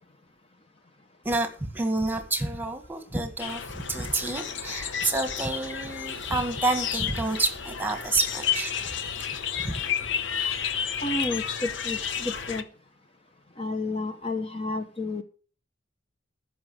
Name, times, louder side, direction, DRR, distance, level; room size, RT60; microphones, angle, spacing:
voice 1, 1.2-8.8 9.0-9.2 9.6-9.8, right 2 dB, 10° right, 1.7 m, -29 dB
sound 1, 3.4-12.6, left 8 dB, 65° left, 0.8 m, -31 dB
voice 2, 11.0-12.6 13.6-15.2, left 2 dB, 30° left, 1.0 m, -31 dB
14.5 x 6.2 x 6.3 m
head